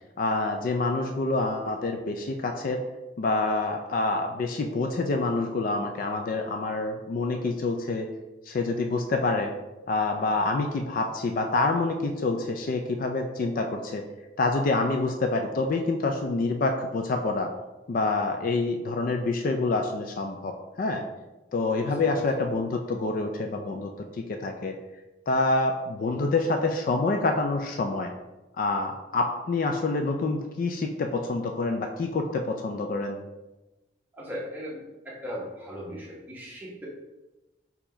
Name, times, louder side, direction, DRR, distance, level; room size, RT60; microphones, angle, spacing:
voice 1, 0.2-2.8 3.2-8.1 8.5-9.5 9.9-14.0 14.4-17.5 17.9-21.0 21.5-24.8 25.3-28.1 28.6-33.2, left 3 dB, 45° left, 5 dB, 0.3 m, -27 dB
voice 2, 21.8-22.2 34.1-36.9, equal, 10° right, -5 dB, 1.0 m, -38 dB
4.5 x 2.8 x 4.3 m, 1.1 s
head